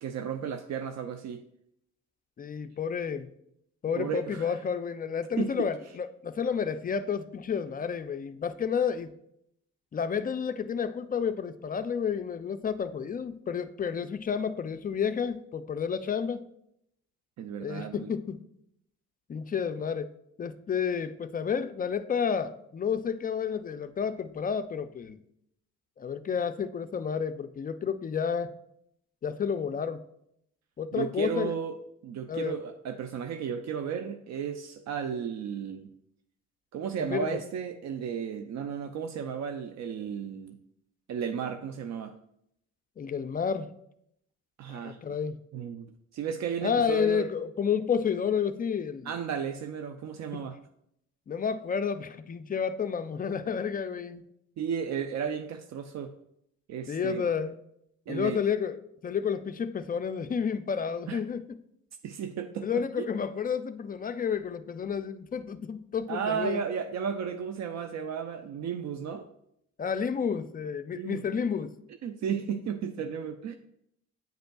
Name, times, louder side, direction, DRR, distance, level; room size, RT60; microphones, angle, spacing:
voice 1, 0.0-1.4 4.0-4.6 5.4-5.7 17.4-18.1 30.9-35.9 36.7-40.6 41.1-42.2 44.6-45.0 45.5-47.3 49.0-50.6 54.6-56.1 56.7-57.3 58.1-58.4 61.1-61.2 62.0-63.1 66.1-69.3 70.9-71.2 72.0-73.6, right 7 dB, 65° right, 0.5 m, -34 dB
voice 2, 2.4-3.3 3.8-9.1 9.9-16.4 17.6-18.4 19.3-20.1 20.4-25.2 26.0-28.5 29.2-30.0 30.8-31.5 32.3-32.5 37.0-37.4 43.0-43.7 44.7-45.4 46.6-49.1 50.3-50.4 51.3-54.2 56.9-57.5 58.1-58.8 59.0-61.4 62.6-66.6 69.8-71.7, left 7 dB, 30° left, 0.3 m, -30 dB
9.0 x 5.2 x 2.3 m
cardioid pair, 90°, 30 cm